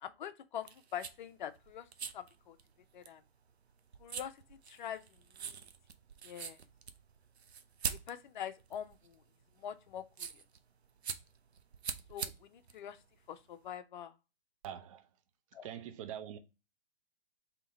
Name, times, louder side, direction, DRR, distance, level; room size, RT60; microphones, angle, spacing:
voice 1, 0.0-1.9 2.1-2.6 2.9-3.2 4.0-5.0 5.5-5.6 6.2-6.6 7.9-9.2 9.6-10.4 12.1-13.0 13.3-14.1 15.5-15.7, left 9 dB, 50° left, 0.6 m, -44 dB
sound 1, 0.6-13.7, right 6 dB, 85° right, 0.7 m, -45 dB
voice 2, 14.6-15.1 15.6-16.4, right 9 dB, 35° right, 0.5 m, -44 dB
3.8 x 2.9 x 3.7 m
hypercardioid pair, 130°, 31 cm